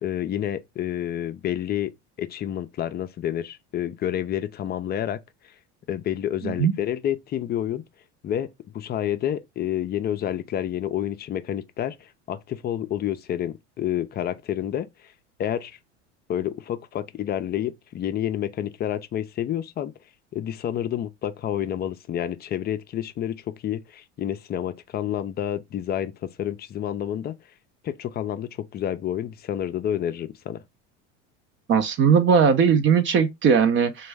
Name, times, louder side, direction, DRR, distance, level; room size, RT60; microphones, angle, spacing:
voice 1, 0.0-1.9 2.2-5.2 5.9-7.8 8.2-15.1 15.4-15.8 16.3-19.9 20.3-27.4 27.8-30.6, left 11 dB, 30° left, 0.4 m, -29 dB
voice 2, 6.4-6.7 31.7-34.1, right 6 dB, 35° right, 0.5 m, -19 dB
3.0 x 2.3 x 3.3 m
hypercardioid pair, 90°, 35 cm